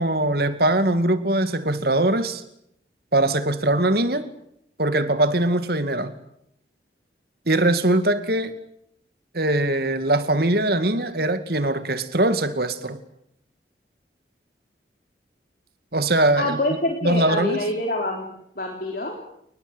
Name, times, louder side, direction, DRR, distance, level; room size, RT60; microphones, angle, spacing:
voice 1, 0.0-2.4 3.1-4.3 4.8-6.1 7.5-8.5 9.3-13.0 15.9-16.6 17.0-17.6, right 1 dB, 55° right, 2.4 m, -21 dB
voice 2, 16.4-18.3 18.6-19.2, left 2 dB, 50° left, 3.9 m, -26 dB
29.5 x 20.5 x 8.2 m
head